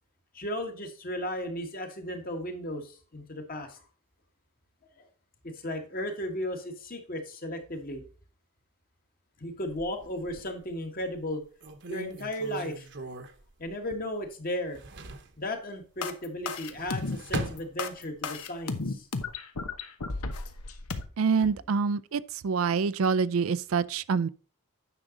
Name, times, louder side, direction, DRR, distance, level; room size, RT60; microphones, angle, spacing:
voice 1, 0.3-3.8 5.0-5.1 5.4-8.0 9.4-11.4 11.9-12.9 13.6-14.8 15.4-19.1 21.4-21.5, left 1 dB, 40° left, 1.5 m, -35 dB
sound 1, 9.7-10.6 11.2-11.3 11.6-14.3 14.5-15.4 16.5-18.3 18.7-19.4, right 3 dB, 55° right, 1.0 m, -40 dB
sound 2, 16.0-21.0, left 3 dB, 90° left, 1.0 m, -33 dB
voice 2, 21.2-24.3, right 5 dB, 70° right, 0.4 m, -26 dB
9.9 x 6.1 x 3.9 m
head